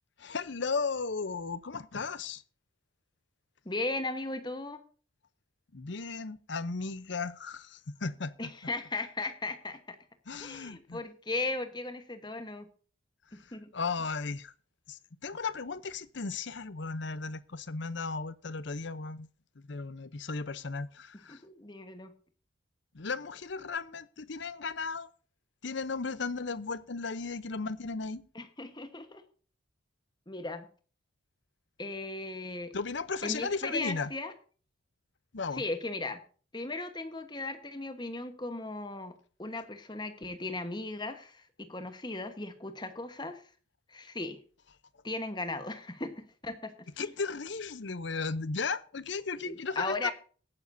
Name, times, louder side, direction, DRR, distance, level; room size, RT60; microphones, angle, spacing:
voice 1, 0.2-2.4 5.7-8.5 10.3-11.0 13.3-14.5 14.9-19.3 19.6-21.4 22.9-25.1 25.6-28.2 32.7-34.1 35.3-35.6 47.0-50.1, left 4 dB, 60° left, 0.7 m, -35 dB
voice 2, 3.6-4.8 8.4-10.0 10.4-12.7 13.3-13.7 21.3-22.1 28.3-29.2 30.3-30.7 31.8-32.7 33.2-34.3 35.5-36.2 36.5-43.4 43.9-44.4 45.0-46.7 47.0-47.1 49.3-50.1, left 2 dB, 20° left, 1.2 m, -37 dB
18.0 x 9.6 x 2.7 m
head